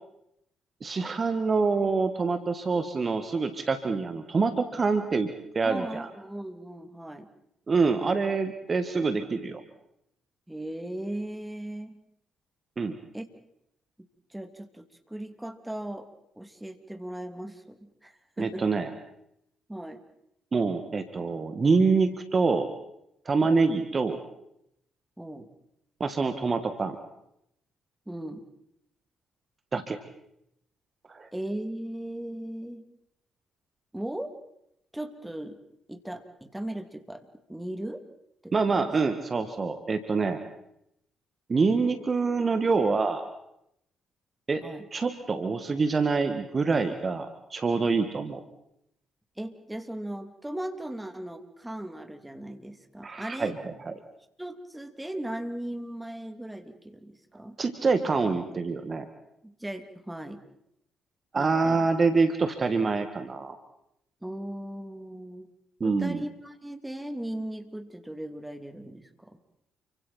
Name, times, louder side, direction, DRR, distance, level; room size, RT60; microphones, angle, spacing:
voice 1, 0.8-5.3 5.6-6.1 7.7-9.6 12.8-13.0 18.4-18.9 20.5-22.7 23.3-24.2 26.0-27.0 29.7-30.0 31.1-31.3 38.5-40.4 41.5-43.2 44.5-44.6 44.9-48.4 53.0-53.9 57.6-59.1 61.3-63.6 65.8-66.3, right 4 dB, 35° right, 9 dB, 1.8 m, -26 dB
voice 2, 5.6-7.3 10.5-11.9 13.1-13.2 14.3-16.1 16.4-18.7 19.7-20.0 23.4-23.8 25.2-25.5 28.1-28.4 31.3-32.8 33.9-34.4 34.9-35.6 35.9-38.0 38.4-38.8 44.6-44.9 49.4-53.6 54.4-57.6 59.4-60.4 61.3-61.9 64.2-65.5 65.8-69.4, right 1 dB, 10° right, 7 dB, 2.7 m, -38 dB
29.5 x 24.5 x 4.4 m, 0.78 s
figure-of-eight pair, 45°, 0 cm